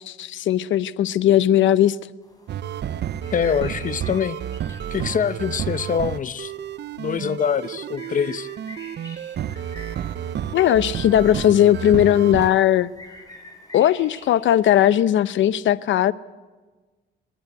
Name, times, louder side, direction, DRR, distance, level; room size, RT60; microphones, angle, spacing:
voice 1, 0.1-2.0 10.5-12.9 13.7-16.1, left 11 dB, 70° left, 0.8 m, -18 dB
sound 1, 2.2-14.6, left 2 dB, 20° left, 6.5 m, -48 dB
sound 2, 2.5-12.5, right 10 dB, 60° right, 0.7 m, -31 dB
voice 2, 3.3-4.4 4.9-6.5 7.0-8.5, left 7 dB, 40° left, 0.8 m, -24 dB
27.0 x 11.0 x 9.4 m
cardioid pair, 90°, 20 cm